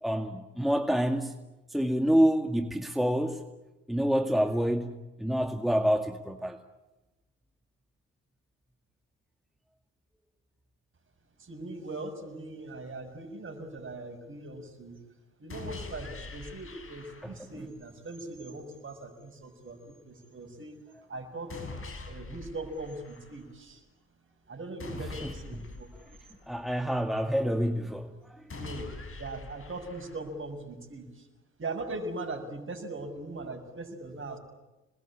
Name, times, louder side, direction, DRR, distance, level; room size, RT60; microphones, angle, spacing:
voice 1, 0.0-1.3 1.7-3.4 3.9-6.6 25.2-25.6 26.5-28.5, equal, ahead, 2.2 m, -27 dB
voice 2, 11.4-15.0 15.4-20.8 21.1-21.6 22.1-23.8 24.5-25.9 28.5-28.9 29.2-31.3 31.6-34.4, right 2 dB, 40° right, 6.8 m, -40 dB
sound 1, 15.5-17.5 21.5-23.5 24.8-26.8 28.5-30.5, left 3 dB, 45° left, 6.1 m, -43 dB
27.5 x 21.0 x 8.8 m
hypercardioid pair, 55°, 31 cm